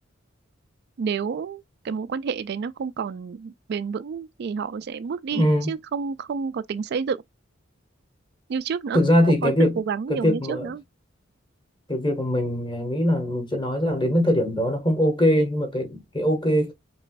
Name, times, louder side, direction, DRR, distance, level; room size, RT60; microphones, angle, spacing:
voice 1, 1.0-7.2 8.5-9.0 9.3-10.8, right 6 dB, 55° right, 0.3 m, -29 dB
voice 2, 5.3-5.7 8.9-9.8 10.1-10.7 11.9-16.7, equal, 25° left, 1.9 m, -22 dB
5.2 x 3.0 x 2.5 m
head